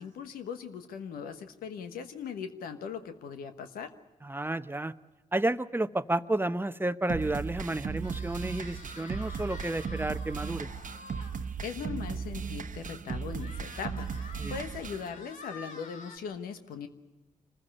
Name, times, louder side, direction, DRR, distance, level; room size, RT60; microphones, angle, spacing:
voice 1, 0.0-3.9 11.6-16.9, left 6 dB, 85° left, 8 dB, 1.2 m, -39 dB
voice 2, 4.2-4.9 5.3-10.7 14.4-14.6, right 2 dB, 15° right, 13 dB, 0.8 m, -31 dB
sound 1, 7.1-15.1, right 6 dB, 60° right, 1.1 m, -37 dB
sound 2, 8.0-11.4 11.9-12.0 12.3-12.4 13.4-16.2, left 2 dB, 60° left, 2.3 m, -48 dB
24.5 x 15.0 x 9.8 m, 1.1 s
supercardioid pair, 45°, 15 cm